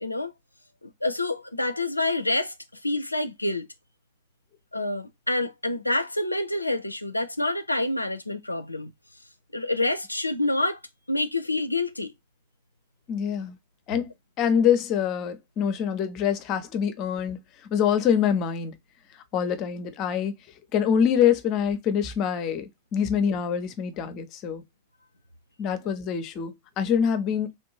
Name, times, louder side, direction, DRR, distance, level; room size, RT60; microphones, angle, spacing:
voice 1, 0.0-0.3 0.8-2.5 2.8-3.7 4.7-8.9 9.5-10.8 11.1-12.1, left 2 dB, 85° left, 0.4 m, -27 dB
voice 2, 13.1-13.6 13.9-14.1 14.4-17.4 17.7-18.8 19.3-20.3 20.7-24.6 25.6-27.5, left 8 dB, 40° left, 0.6 m, -25 dB
3.2 x 2.6 x 2.8 m
figure-of-eight pair, 90°, 0 cm